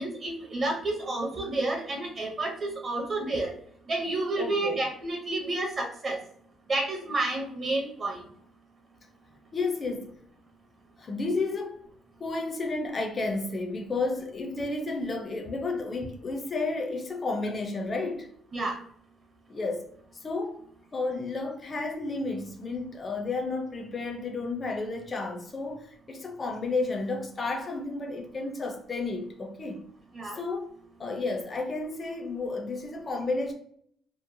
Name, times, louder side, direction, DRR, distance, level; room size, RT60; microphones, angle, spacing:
voice 1, 0.0-3.5 3.9-6.2 6.7-8.2 18.5-18.8 30.1-30.4, right 2 dB, 30° right, 0.5 m, -30 dB
voice 2, 4.4-4.8 9.5-10.2 11.0-11.9 12.2-18.3 19.5-19.9 20.2-20.6 20.9-29.8 30.2-30.7 31.0-33.5, left 3 dB, 25° left, 0.4 m, -32 dB
2.8 x 2.0 x 2.5 m
cardioid pair, 155°, 0 cm